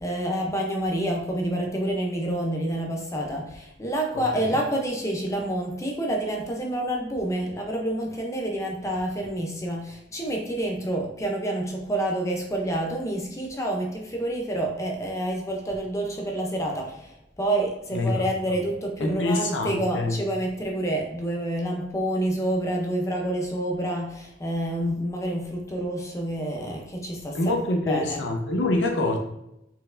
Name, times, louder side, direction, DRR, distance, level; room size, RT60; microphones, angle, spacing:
voice 1, 0.0-27.5 27.9-28.2, right 1 dB, 15° left, 0 dB, 0.6 m, -28 dB
voice 2, 17.9-18.3 19.0-20.2 27.3-29.2, left 2 dB, 85° left, 3 dB, 0.7 m, -25 dB
4.5 x 4.2 x 2.5 m, 0.83 s
head